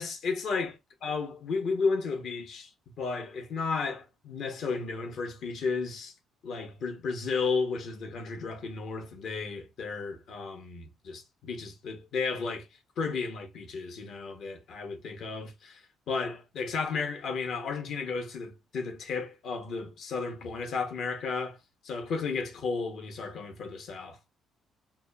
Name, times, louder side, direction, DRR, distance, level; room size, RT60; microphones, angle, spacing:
voice 1, 0.0-2.7 3.0-6.1 6.4-12.7 13.0-21.6 21.8-24.2, left 4 dB, 65° left, 0.7 m, -33 dB
2.8 x 2.0 x 2.2 m
supercardioid pair, 70°, 0 cm